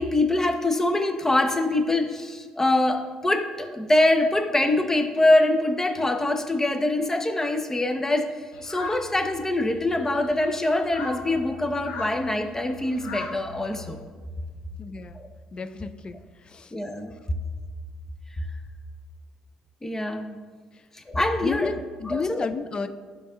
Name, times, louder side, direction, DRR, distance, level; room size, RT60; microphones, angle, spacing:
voice 1, 0.0-8.3 8.6-14.0 15.1-15.3 16.7-17.1 19.8-20.3 20.9-21.7 22.1-22.5, left 2 dB, 20° left, 6 dB, 1.1 m, -24 dB
sound 1, 8.5-14.0, left 3 dB, 75° left, 1.0 m, -39 dB
voice 2, 14.8-15.2 15.5-16.2 16.5-16.7 21.4-22.9, left 4 dB, 40° left, 11 dB, 0.5 m, -31 dB
12.5 x 5.1 x 2.6 m, 1.5 s
hypercardioid pair, 60°, 2 cm